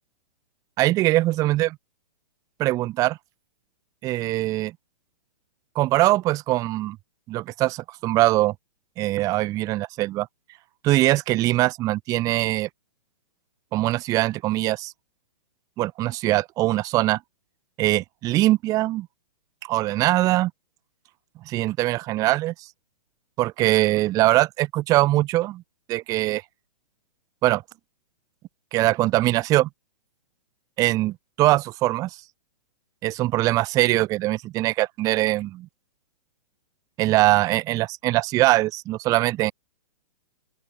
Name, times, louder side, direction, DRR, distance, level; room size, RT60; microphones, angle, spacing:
voice 1, 0.8-1.8 2.6-3.2 4.0-4.7 5.8-7.0 7.3-8.5 9.0-10.3 10.8-12.7 13.7-14.9 15.8-17.2 17.8-19.1 19.6-20.5 21.5-22.5 23.4-25.6 25.9-26.4 27.4-27.6 28.7-29.7 30.8-32.1 33.0-35.7 37.0-39.5, right 17 dB, 15° right, 0.4 m, -22 dB
open air
hypercardioid pair, 130°, 21 cm